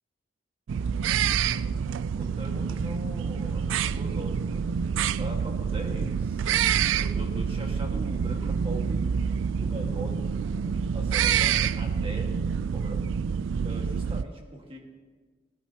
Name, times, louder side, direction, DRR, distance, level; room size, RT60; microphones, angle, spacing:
sound 1, 0.7-14.2, right 7 dB, 75° right, 0.3 m, -27 dB
voice 1, 2.1-4.7 5.2-6.5 7.0-12.3 12.7-13.0 13.6-14.8, right 1 dB, 30° right, 1 dB, 1.6 m, -41 dB
17.0 x 14.5 x 2.9 m, 1.5 s
head